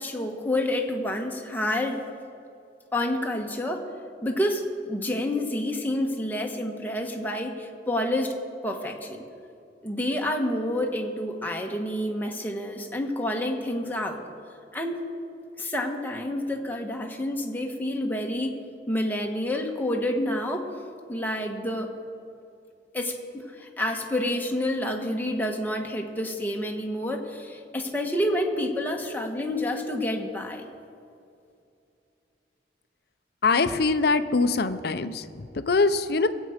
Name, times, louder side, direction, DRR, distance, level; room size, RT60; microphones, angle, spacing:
voice 1, 0.0-2.0 2.9-3.9 4.2-9.2 9.8-14.2 14.7-15.0 15.6-20.7 21.1-21.9 22.9-30.6, left 1 dB, 10° left, 1 dB, 1.3 m, -29 dB
voice 2, 33.4-35.2 35.6-36.3, left 3 dB, 60° left, 10 dB, 0.6 m, -23 dB
21.5 x 8.3 x 5.0 m, 2.5 s
head